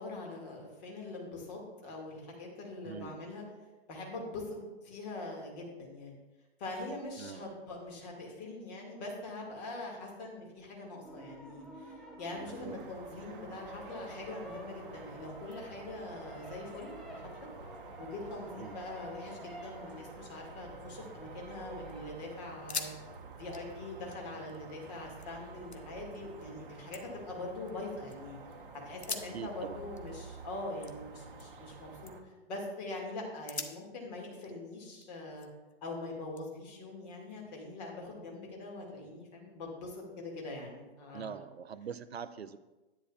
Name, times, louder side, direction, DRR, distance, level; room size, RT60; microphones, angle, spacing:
voice 1, 0.0-3.4 3.9-6.2 6.6-17.5 18.0-22.9 23.3-28.4 28.8-35.5 35.8-41.4, left 2 dB, 40° left, 0 dB, 2.2 m, -43 dB
voice 2, 2.8-3.2 7.2-7.5 12.6-12.8 18.6-18.8 29.3-29.8 41.1-42.6, right 7 dB, 75° right, 14 dB, 0.5 m, -43 dB
sound 1, 11.0-22.0, right 1 dB, ahead, 0.6 m, -50 dB
sound 2, 12.3-32.2, right 4 dB, 55° right, 0.9 m, -50 dB
sound 3, 20.9-21.7 22.0-22.1 22.5-23.0 23.3-25.3 25.7-26.2 26.6-28.2 28.9-31.7 32.0-32.4 32.9-33.0 33.5-35.7 36.4-37.5, left 4 dB, 85° left, 0.8 m, -45 dB
10.5 x 9.0 x 2.4 m, 1.1 s
figure-of-eight pair, 110°, 32 cm